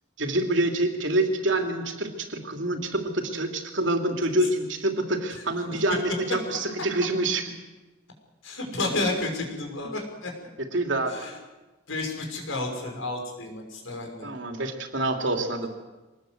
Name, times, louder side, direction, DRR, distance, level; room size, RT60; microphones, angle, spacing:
voice 1, 0.2-7.5 10.7-11.2 14.2-15.7, right 1 dB, 65° right, 4 dB, 3.0 m, -26 dB
voice 2, 6.3-6.6 8.4-10.3 11.1-11.4 11.9-14.3, left 2 dB, 90° left, 2 dB, 6.0 m, -31 dB
24.0 x 20.0 x 8.0 m, 1.1 s
head